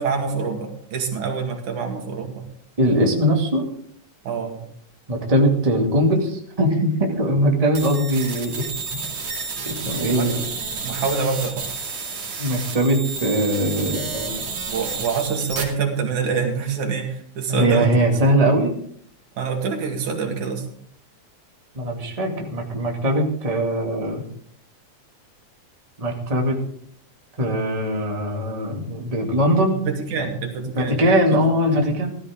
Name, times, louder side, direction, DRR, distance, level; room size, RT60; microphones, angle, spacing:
voice 1, 0.0-2.4 4.2-4.6 10.1-10.3 10.8-11.7 14.7-18.1 18.4-18.5 19.4-20.7 29.7-31.0, right 5 dB, 80° right, 3 dB, 3.5 m, -26 dB
voice 2, 2.8-3.7 5.1-9.0 9.7-10.4 12.4-14.4 17.5-18.7 21.7-24.2 26.0-26.6 27.4-29.8 30.2-30.3 30.6-32.1, equal, 15° right, 0 dB, 2.0 m, -21 dB
sound 1, 7.8-15.6, right 4 dB, 55° right, 3.5 m, -31 dB
17.0 x 13.0 x 3.7 m, 0.62 s
omnidirectional pair, 3.4 m